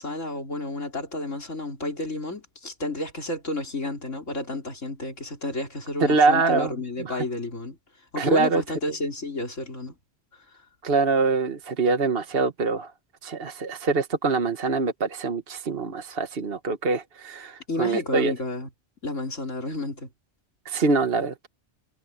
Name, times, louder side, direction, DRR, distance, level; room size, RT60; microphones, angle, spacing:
voice 1, 0.0-7.8 8.1-9.9 10.3-10.6 17.7-18.7 19.0-20.1, left 2 dB, 90° left, 4.7 m, -31 dB
voice 2, 6.1-6.7 7.0-7.2 8.2-8.6 10.8-12.9 13.2-18.3 20.6-21.5, right 4 dB, 55° right, 1.5 m, -24 dB
omnidirectional pair, 1.2 m